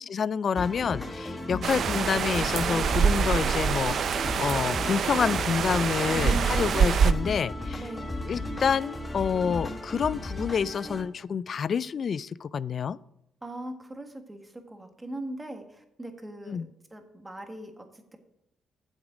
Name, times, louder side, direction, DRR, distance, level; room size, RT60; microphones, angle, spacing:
voice 1, 0.0-7.8 8.2-13.0 16.5-16.7, left 6 dB, 50° left, 19 dB, 0.3 m, -28 dB
sound 1, 0.5-11.0, left 2 dB, 20° left, 1.6 m, -35 dB
sound 2, 1.6-7.1, right 7 dB, 60° right, 0.5 m, -25 dB
voice 2, 6.1-6.8 7.8-8.2 13.4-18.2, right 2 dB, 15° right, 5 dB, 1.6 m, -40 dB
8.9 x 7.2 x 4.9 m, 0.82 s
cardioid pair, 90°, 0 cm